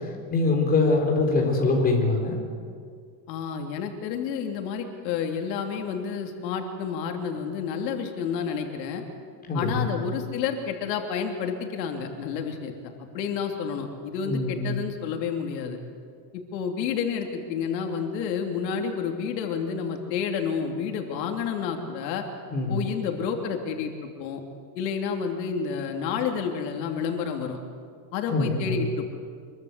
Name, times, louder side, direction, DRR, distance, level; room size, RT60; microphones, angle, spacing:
voice 1, 0.3-2.4 9.5-10.0 14.3-14.7 22.5-22.8 28.3-28.8, left 3 dB, 15° left, 0 dB, 4.1 m, -23 dB
voice 2, 3.3-9.0 9.5-15.8 16.5-22.2 22.7-23.9 24.2-24.4 24.7-27.6 28.1-29.1, left 6 dB, 80° left, 3 dB, 3.1 m, -30 dB
26.0 x 23.0 x 8.2 m, 2.2 s
cardioid pair, 175°, 50 cm